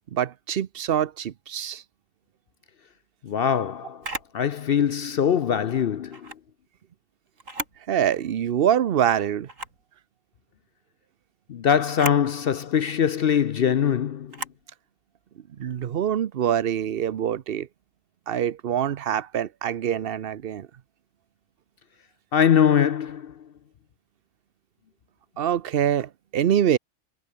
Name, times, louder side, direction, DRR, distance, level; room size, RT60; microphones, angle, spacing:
voice 1, 0.1-1.8 7.9-9.5 15.6-17.7 18.3-20.7 25.4-26.8, right 9 dB, 55° right, 0.9 m, -25 dB
voice 2, 3.2-4.0 4.3-6.3 11.5-14.4 22.3-23.3, left 8 dB, 55° left, 0.8 m, -22 dB
Camera, 4.0-4.4 6.1-6.4 7.4-7.8 8.3-8.4 9.5-9.8 11.9-12.3 14.3-14.6, right 2 dB, 80° right, 5.3 m, -35 dB
omnidirectional pair, 1.3 m